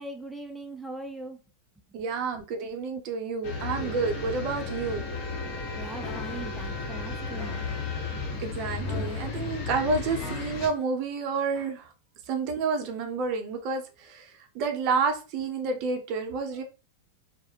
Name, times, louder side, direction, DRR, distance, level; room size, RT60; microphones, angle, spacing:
voice 1, 0.0-1.4 5.8-7.7, right 2 dB, 5° right, 3 dB, 0.4 m, -40 dB
voice 2, 1.9-5.0 8.4-11.9 12.3-16.6, right 4 dB, 50° right, 6 dB, 0.6 m, -29 dB
sound 1, 3.4-10.7, left 4 dB, 50° left, 0.9 m, -34 dB
sound 2, 6.0-6.5 7.4-7.9 8.8-9.5 10.2-10.8 11.5-11.7, left 3 dB, 20° left, 0.8 m, -43 dB
2.4 x 2.0 x 2.8 m, 0.32 s
hypercardioid pair, 115°, 0 cm